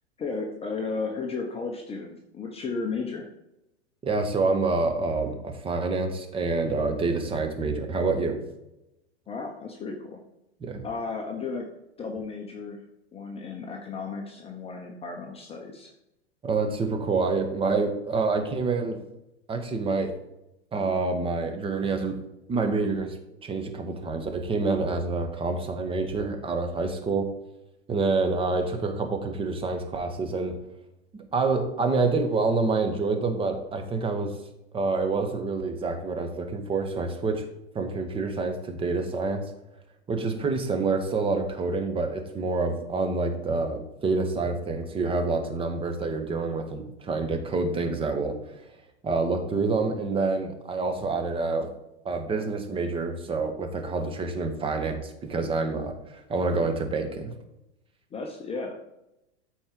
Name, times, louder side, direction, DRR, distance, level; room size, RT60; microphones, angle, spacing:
voice 1, 0.2-3.3 9.3-10.2 10.8-11.7 12.0-12.8 13.1-15.9 58.1-58.7, left 4 dB, 15° left, 2 dB, 0.9 m, -34 dB
voice 2, 4.0-8.4 10.6-10.8 16.4-19.0 19.5-20.1 20.7-22.2 22.5-23.2 23.4-27.3 27.9-30.6 31.3-34.3 34.7-37.5 37.7-39.5 40.1-48.6 49.0-51.7 52.0-57.3, right 3 dB, 15° right, 5 dB, 1.2 m, -27 dB
13.0 x 4.6 x 3.8 m, 0.88 s
figure-of-eight pair, 95°, 34 cm